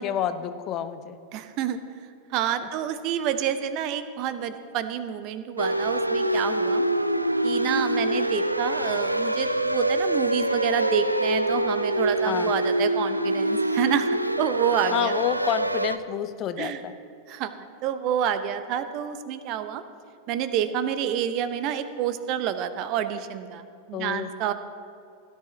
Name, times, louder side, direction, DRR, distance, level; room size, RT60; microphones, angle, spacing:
voice 1, 0.0-1.2 12.2-12.5 14.9-17.0 23.9-24.3, left 9 dB, 35° left, 11 dB, 0.6 m, -29 dB
voice 2, 1.3-1.8 2.3-6.8 7.4-15.1 16.6-16.8 17.3-19.8 20.3-24.5, right 9 dB, 40° right, 12 dB, 0.6 m, -28 dB
sound 1, 5.6-16.0, right 1 dB, 85° right, 0.3 m, -25 dB
16.5 x 10.5 x 3.1 m, 2.4 s
figure-of-eight pair, 90°, 0 cm